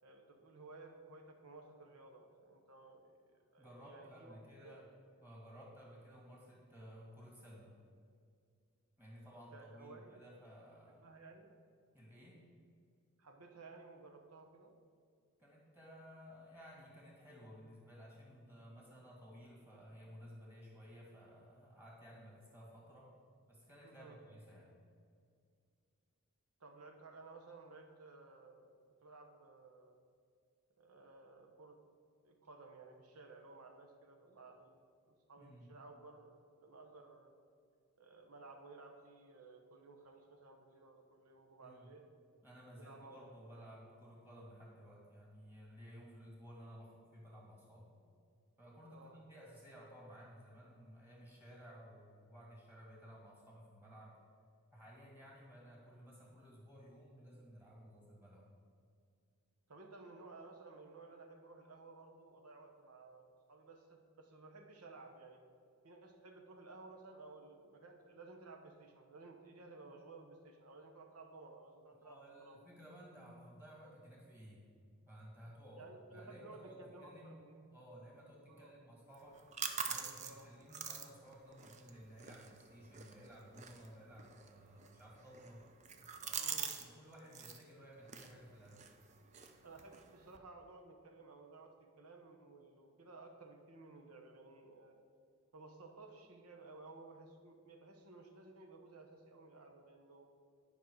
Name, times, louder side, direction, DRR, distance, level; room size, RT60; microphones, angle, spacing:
voice 1, 0.0-4.8 9.5-10.2 11.0-11.5 13.2-14.7 23.8-24.2 26.6-30.0 30.8-31.8 32.2-34.8 35.3-36.3 36.6-37.3 38.0-42.1 42.7-43.2 48.9-49.2 59.7-65.4 65.8-72.6 75.8-77.6 78.5-78.7 80.2-80.5 86.4-86.8 89.6-94.9 95.5-100.3, right 3 dB, 80° right, 3 dB, 1.1 m, -56 dB
voice 2, 3.6-4.8 5.2-7.7 9.0-11.1 11.9-12.4 15.4-23.1 23.5-24.8 35.4-35.7 41.6-41.9 42.4-47.9 48.6-54.2 54.7-58.5 71.9-74.7 75.1-77.4 77.7-79.4 79.9-85.6 86.2-88.9, equal, 10° right, -4 dB, 2.0 m, -56 dB
sound 1, 79.1-86.9 87.1-87.6 88.0-90.4, right 7 dB, 30° right, 0.5 m, -46 dB
10.0 x 5.4 x 4.7 m, 2.2 s
head